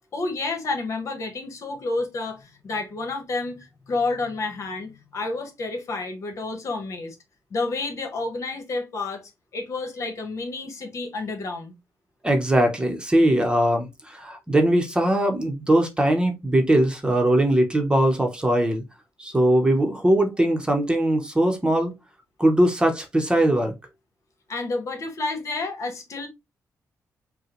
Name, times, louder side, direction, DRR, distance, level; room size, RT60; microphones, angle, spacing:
voice 1, 0.1-7.1 7.5-11.7 24.5-26.3, left 3 dB, 55° left, 1.3 m, -30 dB
voice 2, 12.2-18.8 19.2-21.9 22.4-23.7, right 1 dB, 15° right, 1.0 m, -20 dB
5.5 x 2.3 x 3.1 m
cardioid pair, 95°, 6 cm